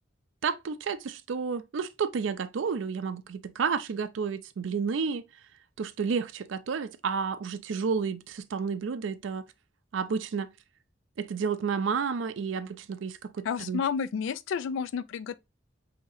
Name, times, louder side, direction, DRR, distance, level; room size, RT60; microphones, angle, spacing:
voice 1, 0.4-5.2 5.8-9.4 9.9-10.5 11.2-13.8, right 5 dB, 80° right, 0.4 m, -31 dB
voice 2, 13.4-15.4, left 6 dB, 85° left, 0.3 m, -31 dB
4.7 x 2.8 x 2.6 m
head